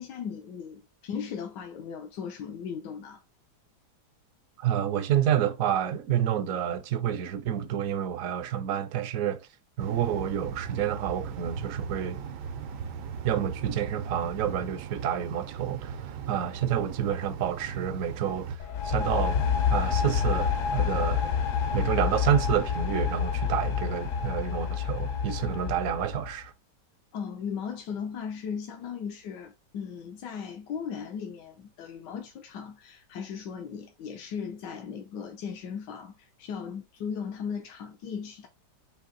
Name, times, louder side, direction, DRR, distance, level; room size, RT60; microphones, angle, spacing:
voice 1, 0.0-3.2 27.1-38.5, left 7 dB, 85° left, 1.3 m, -37 dB
voice 2, 4.6-9.5 9.8-12.2 13.2-19.4 19.7-21.3 21.7-26.5, right 10 dB, 65° right, 0.9 m, -29 dB
sound 1, 9.8-18.6, right 6 dB, 80° right, 1.3 m, -38 dB
sound 2, 18.6-26.4, left 7 dB, 60° left, 0.9 m, -28 dB
4.6 x 2.7 x 3.7 m
omnidirectional pair, 1.8 m